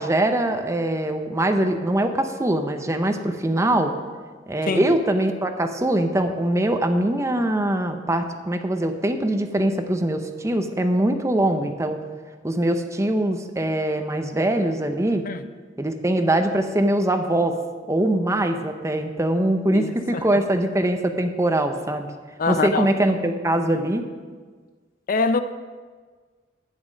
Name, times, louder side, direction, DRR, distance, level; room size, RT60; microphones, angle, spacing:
voice 1, 0.0-3.9 4.5-12.0 12.4-15.2 15.8-17.6 17.9-22.1 22.5-24.0, right 1 dB, 15° right, 0.7 m, -22 dB
voice 2, 19.7-20.2 22.4-22.9 25.1-25.4, left 4 dB, 50° left, 0.5 m, -24 dB
11.0 x 9.5 x 5.2 m
head